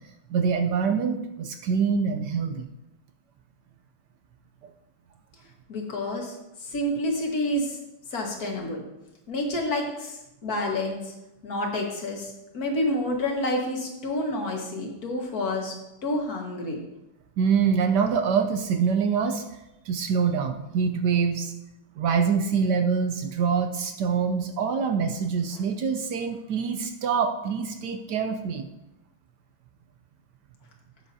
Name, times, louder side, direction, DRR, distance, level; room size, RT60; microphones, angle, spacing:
voice 1, 0.3-2.7 17.4-19.4 19.9-21.5 22.0-28.7, right 6 dB, 70° right, 6 dB, 1.0 m, -25 dB
voice 2, 5.7-6.4 6.6-7.8 8.1-8.8 9.3-11.1 11.4-15.7 16.0-16.8, left 1 dB, 50° left, 0 dB, 1.9 m, -29 dB
12.5 x 8.1 x 2.7 m, 0.92 s
omnidirectional pair, 2.2 m